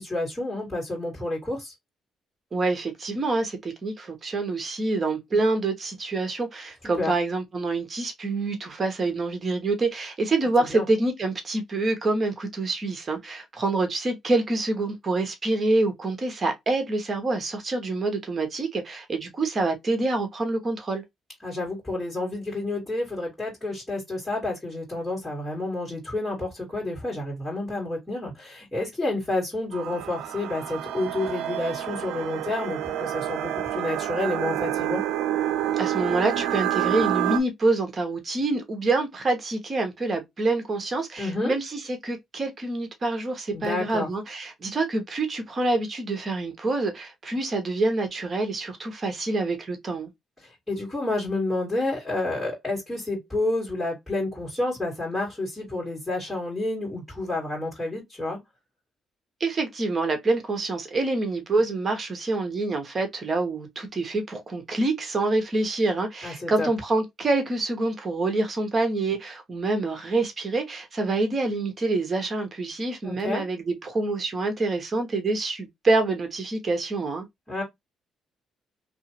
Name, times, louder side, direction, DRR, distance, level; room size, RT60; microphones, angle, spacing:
voice 1, 0.0-1.7 6.8-7.1 10.6-10.9 21.4-35.0 41.2-41.5 43.5-44.1 50.4-58.4 66.2-66.7 73.0-73.4 77.5-77.6, left 2 dB, 10° left, 2.1 m, -30 dB
voice 2, 2.5-21.0 35.8-50.1 59.4-77.2, right 2 dB, 40° right, 1.1 m, -26 dB
sound 1, 29.7-37.4, right 12 dB, 90° right, 0.3 m, -28 dB
2.9 x 2.6 x 2.9 m
cardioid pair, 90°, 0 cm